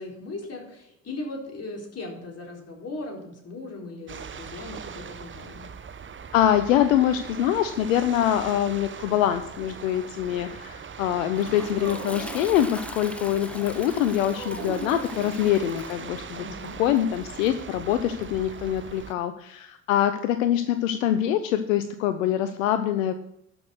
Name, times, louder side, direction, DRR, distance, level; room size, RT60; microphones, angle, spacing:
voice 1, 0.0-5.7 16.4-16.8, left 2 dB, 40° left, 0 dB, 4.2 m, -38 dB
sound 1, 4.1-19.1, right 6 dB, 30° right, 1.0 m, -41 dB
voice 2, 6.3-16.4 16.8-23.1, left 11 dB, 80° left, 10 dB, 0.7 m, -24 dB
Toilet flush, 10.9-19.1, equal, 5° left, 1.1 m, -43 dB
Dog, 11.8-13.2 14.3-15.9, right 6 dB, 90° right, 1.6 m, -39 dB
12.0 x 6.2 x 6.5 m, 0.77 s
hypercardioid pair, 55°, 39 cm